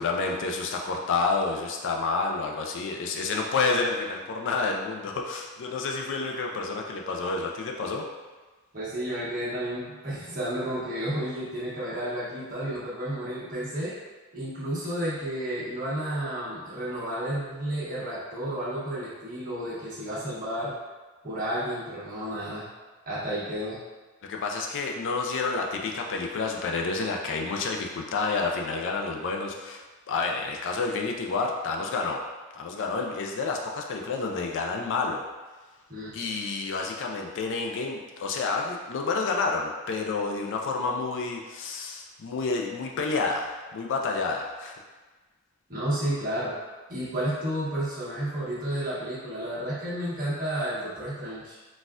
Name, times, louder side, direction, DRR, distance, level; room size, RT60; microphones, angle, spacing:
voice 1, 0.0-8.1 24.3-32.2 32.5-35.3 36.1-44.8, left 4 dB, 60° left, 1 dB, 0.4 m, -29 dB
voice 2, 8.7-13.9 14.3-20.7 21.2-22.7 23.1-23.8 35.9-36.2 45.7-46.5 46.9-51.6, right 1 dB, 40° right, -9 dB, 1.2 m, -31 dB
4.0 x 2.3 x 2.4 m, 1.3 s
head